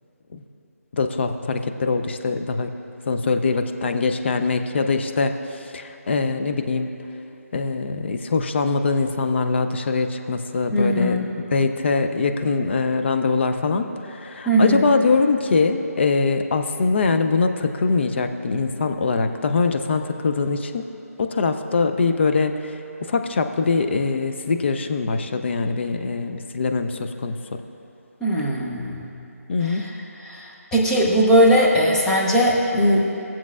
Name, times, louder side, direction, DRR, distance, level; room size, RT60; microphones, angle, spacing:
voice 1, 1.0-2.7 3.1-6.9 7.5-20.8 21.2-22.7 23.0-27.4 29.5-29.9, left 4 dB, 45° left, 7 dB, 0.5 m, -23 dB
voice 2, 10.7-11.3 14.5-14.8 28.2-29.1 29.6-29.9 30.2-33.1, equal, 5° left, -6 dB, 0.7 m, -19 dB
19.0 x 7.3 x 2.4 m, 2.8 s
figure-of-eight pair, 160°, 9 cm